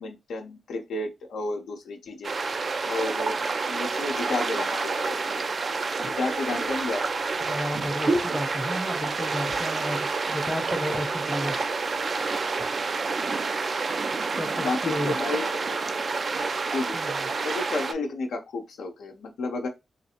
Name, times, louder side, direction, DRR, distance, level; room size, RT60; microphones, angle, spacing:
voice 1, 0.0-2.3 2.9-3.4 3.7-5.4 6.0-7.0 14.5-15.6 16.7-17.0 17.4-19.7, left 3 dB, 85° left, 0.6 m, -31 dB
sound 1, 2.2-17.9, right 4 dB, 55° right, 0.3 m, -29 dB
sound 2, 6.0-9.1 9.4-9.9 10.2-10.3 10.6-11.3 12.0-12.8 13.4-13.6, right 2 dB, 85° right, 1.1 m, -34 dB
voice 2, 7.4-11.6 14.4-15.1 16.9-17.2 17.7-17.8, left 1 dB, 15° left, 0.6 m, -33 dB
3.1 x 2.4 x 2.8 m
cardioid pair, 55°, 0 cm